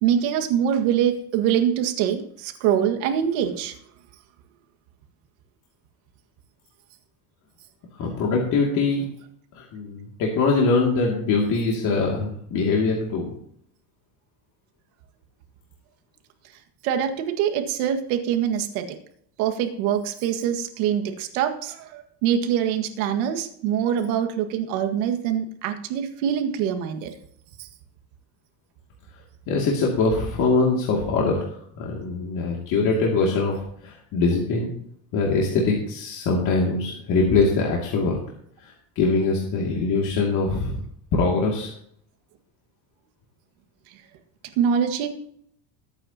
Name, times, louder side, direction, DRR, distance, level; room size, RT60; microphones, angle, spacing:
voice 1, 0.0-3.7 16.8-18.9 19.4-27.1 44.6-45.1, right 9 dB, 85° right, 6 dB, 1.9 m, -24 dB
voice 2, 8.0-9.1 9.5-13.3 29.5-34.7 35.1-38.2 38.6-40.8 41.1-41.7, left 3 dB, 45° left, -2 dB, 2.5 m, -23 dB
21.0 x 9.1 x 2.9 m, 0.67 s
cardioid pair, 165°, 42 cm